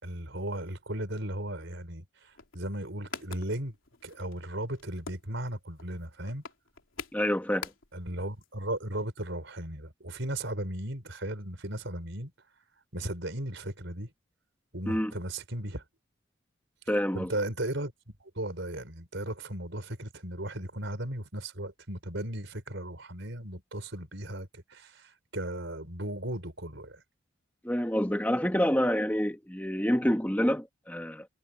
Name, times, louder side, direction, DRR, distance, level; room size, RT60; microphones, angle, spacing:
voice 1, 0.0-3.7 4.0-6.4 7.9-12.3 12.9-14.1 14.7-15.8 17.1-17.9 18.2-27.0, right 1 dB, 60° right, 5.0 m, -36 dB
sound 1, 2.3-8.1 8.4-8.5 8.7-8.9, left 5 dB, 70° left, 3.5 m, -45 dB
voice 2, 7.1-7.7 14.9-15.1 16.9-17.3 27.6-31.3, equal, 10° left, 1.5 m, -27 dB
head